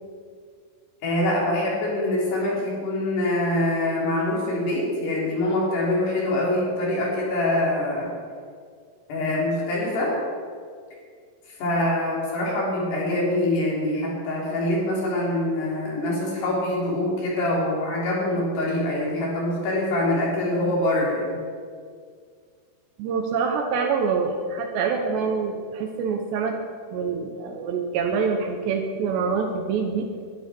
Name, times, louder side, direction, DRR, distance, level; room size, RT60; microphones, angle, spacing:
voice 1, 1.0-8.1 9.1-10.1 11.5-21.4, left 1 dB, 60° left, -4 dB, 5.6 m, -24 dB
voice 2, 23.0-26.6 26.9-30.1, right 5 dB, 75° right, 4 dB, 3.0 m, -25 dB
21.5 x 12.5 x 4.5 m, 2.1 s
omnidirectional pair, 5.6 m